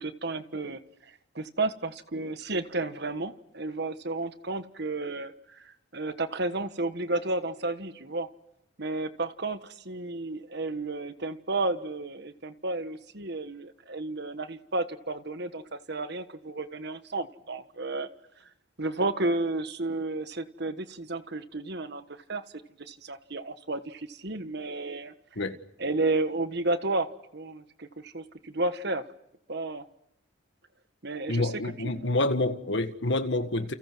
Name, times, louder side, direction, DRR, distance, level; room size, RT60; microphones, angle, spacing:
voice 1, 0.0-8.3 8.8-18.1 18.8-22.4 22.8-25.1 25.8-27.1 27.3-29.0 29.5-29.9 31.0-31.5 31.8-31.9, right 2 dB, 55° right, 11 dB, 1.4 m, -32 dB
voice 2, 31.3-33.7, left 2 dB, 60° left, 8 dB, 1.7 m, -27 dB
30.0 x 29.5 x 6.2 m, 0.80 s
head